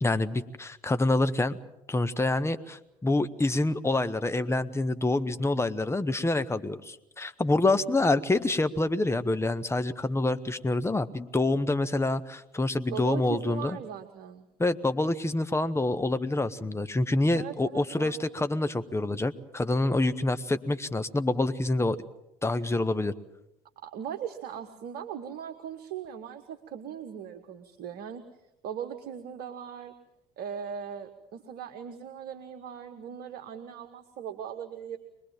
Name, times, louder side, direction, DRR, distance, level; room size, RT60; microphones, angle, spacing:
voice 1, 0.0-1.6 1.9-13.8 14.6-22.0 22.4-23.1, left 2 dB, 15° left, 10 dB, 1.2 m, -27 dB
voice 2, 12.9-14.5 17.3-18.2 23.8-28.2 28.6-29.9 30.4-35.0, right 8 dB, 55° right, 7 dB, 1.5 m, -39 dB
25.0 x 20.5 x 7.4 m, 0.87 s
figure-of-eight pair, 55°, 20 cm